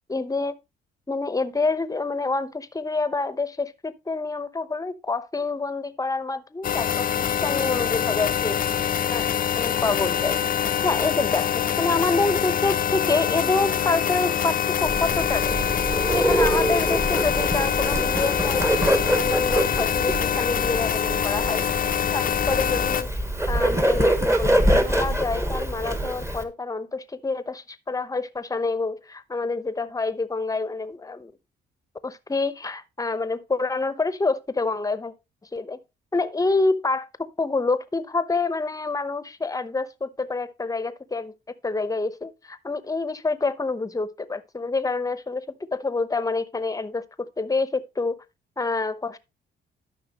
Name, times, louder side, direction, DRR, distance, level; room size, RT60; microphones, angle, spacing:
voice 1, 0.1-0.5 1.1-8.6 9.1-9.3 9.6-10.4 10.8-15.8 16.1-21.7 22.1-23.1 23.5-31.3 32.0-35.1 35.5-35.8 36.1-41.3 41.6-48.2 48.6-49.2, left 3 dB, 15° left, 0.9 m, -27 dB
sound 1, 6.6-23.0, left 9 dB, 45° left, 0.6 m, -25 dB
Bird, 14.8-26.4, right 1 dB, 15° right, 1.2 m, -25 dB
12.5 x 5.7 x 2.9 m
cardioid pair, 90°, 20 cm